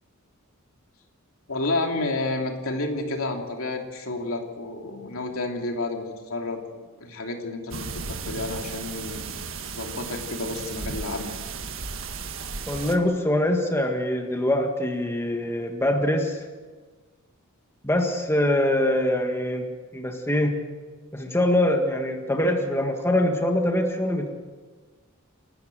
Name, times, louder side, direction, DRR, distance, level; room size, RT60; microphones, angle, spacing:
voice 1, 1.5-6.0 6.3-9.4 9.7-11.4, left 2 dB, 75° left, 2 dB, 2.9 m, -30 dB
sound 1, 7.7-13.0, right 5 dB, 65° right, 1.7 m, -35 dB
voice 2, 12.7-16.4 17.8-20.6 21.1-24.3, left 1 dB, 10° left, 3 dB, 1.8 m, -24 dB
28.0 x 13.0 x 7.8 m, 1.4 s
head